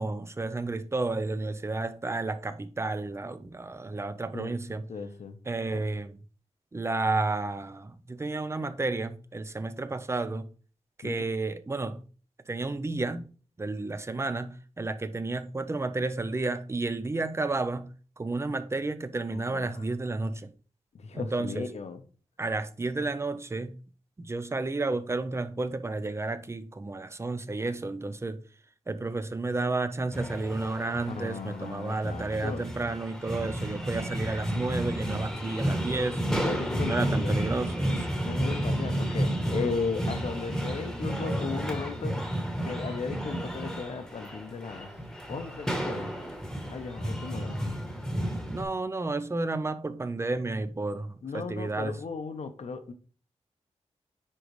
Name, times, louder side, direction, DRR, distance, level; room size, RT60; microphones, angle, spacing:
voice 1, 0.0-4.9 5.5-6.2 6.7-10.5 11.0-12.0 12.5-13.3 13.6-20.5 21.1-21.7 22.4-23.8 24.2-28.4 28.9-36.3 36.9-38.2 48.5-52.0, right 3 dB, 25° right, 0.5 m, -31 dB
voice 2, 4.9-5.4 5.7-5.8 11.0-11.1 19.3-19.9 20.9-22.0 31.1-32.7 36.4-37.4 38.2-42.2 42.6-44.9 45.3-46.1 46.7-47.6 51.2-52.9, left 5 dB, 70° left, 0.9 m, -36 dB
sound 1, 30.1-48.6, equal, 5° left, 1.2 m, -32 dB
9.9 x 3.9 x 3.1 m
wide cardioid pair, 150°, 12 cm